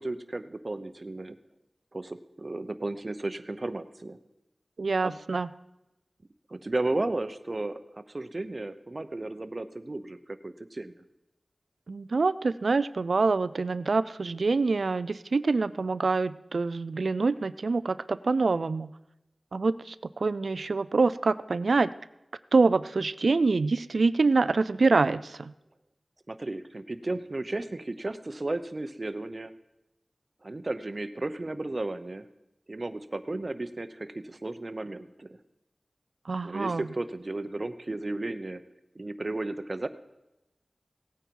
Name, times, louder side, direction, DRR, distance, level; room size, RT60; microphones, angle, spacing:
voice 1, 0.0-1.3 1.9-4.2 5.0-5.1 6.5-10.9 26.3-29.5 30.4-32.3 32.7-35.4 36.4-38.6 38.9-39.9, right 2 dB, 45° right, 11 dB, 0.8 m, -34 dB
voice 2, 4.8-5.5 11.9-18.9 19.5-21.9 22.5-25.5 36.3-36.9, right 3 dB, 85° right, 16 dB, 0.4 m, -25 dB
17.5 x 9.0 x 4.6 m, 0.92 s
wide cardioid pair, 60°, 0 cm